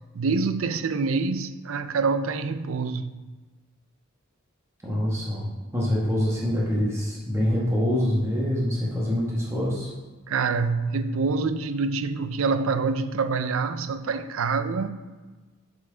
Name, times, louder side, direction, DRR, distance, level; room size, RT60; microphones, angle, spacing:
voice 1, 0.1-3.1 10.3-14.9, right 4 dB, 75° right, 0.5 m, -26 dB
voice 2, 4.8-9.9, equal, 15° right, 1.2 m, -25 dB
7.6 x 5.5 x 3.8 m
head